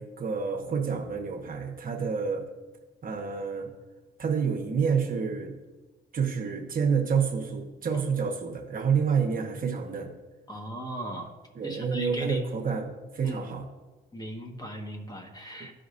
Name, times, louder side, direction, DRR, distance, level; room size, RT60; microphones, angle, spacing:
voice 1, 0.0-2.4 3.0-3.7 4.2-5.5 6.1-10.1 11.5-13.6 15.6-15.7, right 6 dB, 45° right, 3 dB, 1.1 m, -28 dB
voice 2, 10.5-11.3 11.6-12.4 13.2-13.5 14.1-15.7, right 1 dB, 20° left, 2 dB, 1.4 m, -37 dB
14.5 x 5.0 x 2.6 m, 1.2 s
cardioid pair, 90°, 20 cm